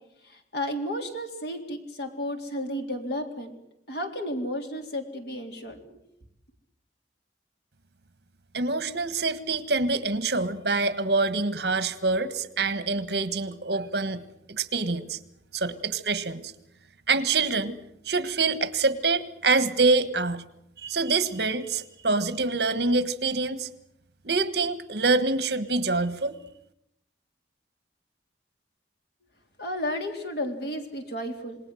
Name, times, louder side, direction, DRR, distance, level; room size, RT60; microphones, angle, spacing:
voice 1, 0.2-3.5 3.9-6.0 29.6-31.6, equal, 65° left, 4 dB, 3.6 m, -33 dB
voice 2, 8.5-14.2 14.5-15.2 15.5-16.5 17.1-17.7 18.0-20.4 20.8-23.7 24.2-26.4, right 3 dB, 65° right, 14 dB, 1.4 m, -25 dB
27.5 x 19.5 x 7.8 m, 0.79 s
head